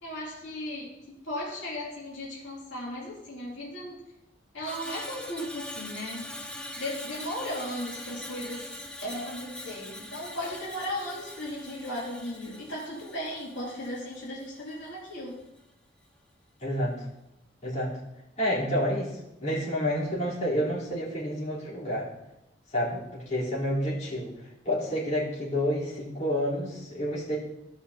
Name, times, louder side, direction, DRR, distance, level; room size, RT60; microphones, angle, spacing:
voice 1, 0.0-4.0 4.5-6.3 6.8-15.4, left 1 dB, 75° left, -7 dB, 2.7 m, -36 dB
Screech, 4.6-15.0 15.3-15.6, left 1 dB, 5° left, 0.7 m, -42 dB
voice 2, 16.6-17.1 17.6-18.0 18.4-22.1 22.7-27.4, equal, 40° left, -9 dB, 3.6 m, -29 dB
15.5 x 5.6 x 2.8 m, 0.90 s
head